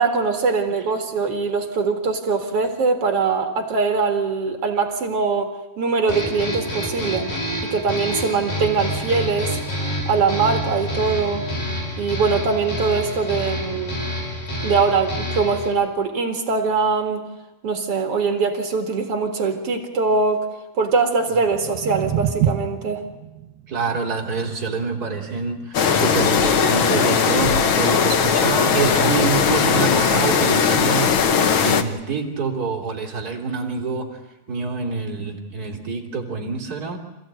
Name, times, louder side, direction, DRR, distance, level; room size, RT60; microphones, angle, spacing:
voice 1, 0.0-7.3 7.7-9.6 10.1-11.5 12.0-14.0 14.6-17.2 17.6-20.5 20.8-23.0, right 4 dB, 50° right, 4 dB, 2.6 m, -22 dB
sound 1, 6.1-15.7, equal, 60° left, 6.8 m, -28 dB
sound 2, 21.2-27.4, right 10 dB, 70° right, 2.3 m, -30 dB
voice 2, 23.7-34.2 34.5-37.0, right 4 dB, 30° right, 1 dB, 3.2 m, -26 dB
sound 3, 25.7-31.8, left 6 dB, 80° left, 1.1 m, -18 dB
27.0 x 16.0 x 9.0 m, 1.0 s
omnidirectional pair, 3.9 m